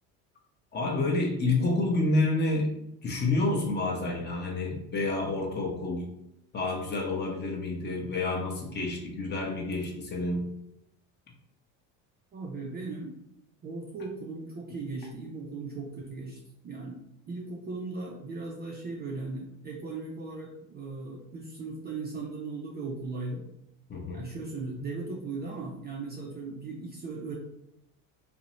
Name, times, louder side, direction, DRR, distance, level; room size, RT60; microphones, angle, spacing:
voice 1, 0.7-2.7 3.0-6.1 6.5-10.5 15.0-15.1 23.9-24.3, left 2 dB, 25° left, 0 dB, 0.6 m, -29 dB
voice 2, 12.3-13.1 13.6-16.4 16.6-17.0 17.3-23.4 24.1-27.4, right 3 dB, 25° right, -2 dB, 0.3 m, -38 dB
2.6 x 2.0 x 2.9 m, 0.81 s
supercardioid pair, 100°, 41 cm